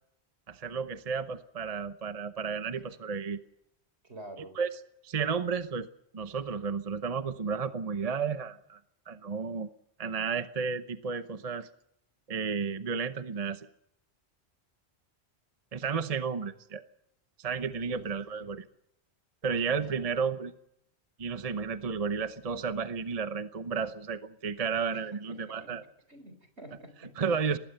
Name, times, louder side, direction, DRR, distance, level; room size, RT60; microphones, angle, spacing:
voice 1, 0.5-3.4 4.6-4.7 5.0-5.9 6.1-8.8 9.1-9.7 10.0-11.7 12.3-13.7 15.7-16.8 17.4-18.6 19.4-20.5 21.2-25.8 27.2-27.6, right 5 dB, 35° right, 10 dB, 0.9 m, -32 dB
voice 2, 4.0-4.6 17.9-18.5 19.7-20.1 24.9-25.8 26.1-27.6, right 1 dB, 75° right, 9 dB, 4.2 m, -49 dB
24.0 x 19.5 x 6.6 m, 0.76 s
omnidirectional pair, 1.1 m